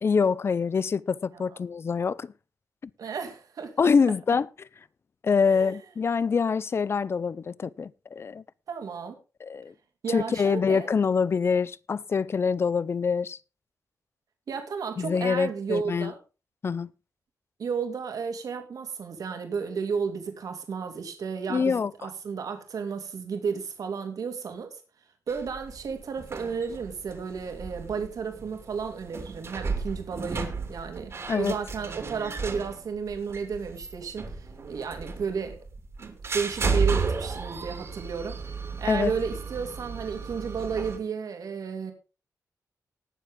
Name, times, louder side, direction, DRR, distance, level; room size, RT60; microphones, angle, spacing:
voice 1, 0.0-2.3 3.8-4.5 5.2-8.4 9.4-9.7 10.1-13.4 15.0-16.1 16.6-16.9 21.5-21.9 31.3-31.6 38.8-39.1, left 5 dB, 45° left, 0.5 m, -25 dB
voice 2, 3.0-3.9 5.4-5.8 8.7-9.1 10.0-10.9 14.5-16.2 17.6-24.8 25.3-35.6 36.0-41.9, right 6 dB, 75° right, 2.8 m, -33 dB
sound 1, 25.3-41.0, right 4 dB, 45° right, 2.6 m, -33 dB
19.0 x 7.4 x 3.7 m
wide cardioid pair, 135°, 6 cm